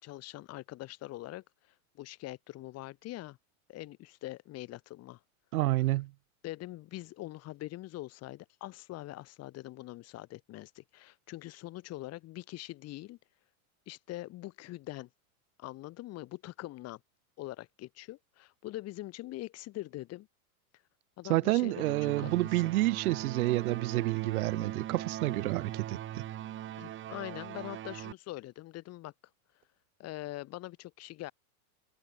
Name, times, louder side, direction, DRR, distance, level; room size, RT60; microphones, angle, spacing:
voice 1, 0.0-3.4 3.7-5.2 6.4-13.2 13.9-15.1 15.6-17.0 17.4-20.3 21.2-22.7 26.8-29.1 30.0-31.3, left 17 dB, 35° left, 6.2 m, -43 dB
voice 2, 5.5-6.1 21.3-26.2, right 18 dB, 75° right, 1.9 m, -29 dB
sound 1, 21.7-28.1, right 12 dB, 25° right, 7.6 m, -40 dB
supercardioid pair, 160°, 44 cm